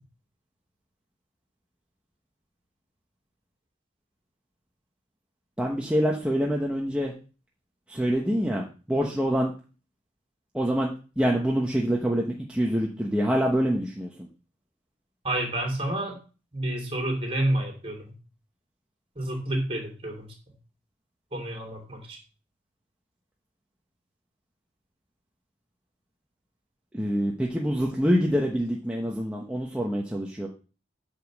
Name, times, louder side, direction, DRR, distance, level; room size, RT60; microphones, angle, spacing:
voice 1, 5.6-7.1 7.9-9.5 10.5-10.9 11.2-14.3 26.9-30.5, equal, 5° right, -2 dB, 1.1 m, -26 dB
voice 2, 15.2-16.2 16.5-18.1 19.2-20.3 21.3-22.2, right 1 dB, 30° right, 1 dB, 3.4 m, -29 dB
8.9 x 5.0 x 6.5 m, 0.35 s
head